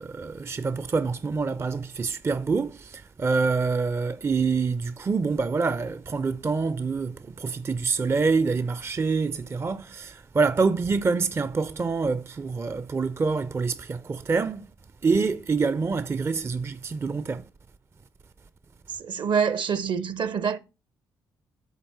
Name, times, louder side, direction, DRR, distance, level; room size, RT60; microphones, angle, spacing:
voice 1, 0.0-14.7 15.0-17.5, right 4 dB, 25° right, 0.5 m, -26 dB
voice 2, 19.0-20.6, right 6 dB, 50° right, 0.7 m, -26 dB
11.0 x 4.3 x 4.4 m
hypercardioid pair, 45°, 10 cm